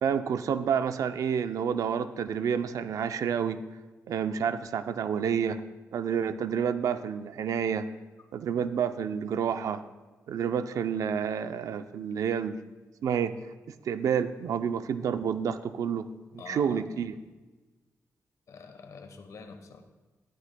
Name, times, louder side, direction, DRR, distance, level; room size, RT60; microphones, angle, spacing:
voice 1, 0.0-3.6 4.1-5.6 5.9-7.9 8.3-9.8 10.3-12.6 13.0-13.4 13.7-16.1 16.5-17.1, right 7 dB, 90° right, 11 dB, 0.5 m, -29 dB
voice 2, 16.4-17.1 18.5-19.8, left 5 dB, 75° left, 7 dB, 1.1 m, -46 dB
13.0 x 12.0 x 2.2 m, 1.2 s
cardioid pair, 90°, 6 cm